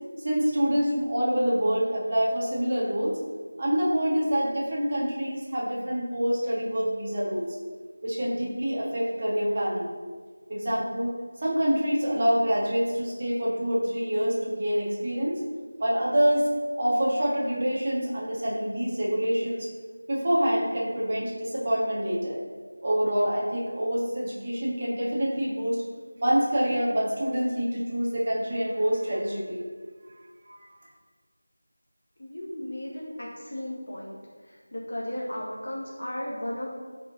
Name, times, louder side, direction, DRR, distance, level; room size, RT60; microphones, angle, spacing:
voice 1, 0.2-3.2 3.6-7.5 8.0-9.9 10.5-11.1 11.4-15.4 15.8-16.5 16.8-19.7 20.1-22.4 22.8-25.8 26.2-29.7 30.1-30.8, equal, 25° right, -5 dB, 1.7 m, -26 dB
voice 2, 32.2-34.2 34.7-36.7, left 1 dB, 45° left, -4 dB, 1.5 m, -35 dB
10.5 x 5.5 x 4.0 m, 1.5 s
figure-of-eight pair, 175°, 0 cm